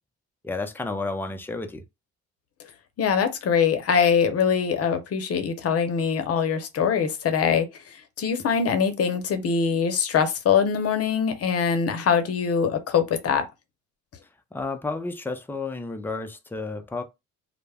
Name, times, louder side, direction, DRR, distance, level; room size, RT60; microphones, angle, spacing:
voice 1, 0.4-1.8 14.5-17.0, left 3 dB, 5° left, 0.4 m, -31 dB
voice 2, 3.0-13.4, left 6 dB, 55° left, 0.7 m, -23 dB
2.2 x 2.0 x 3.3 m
cardioid pair, 90°, 30 cm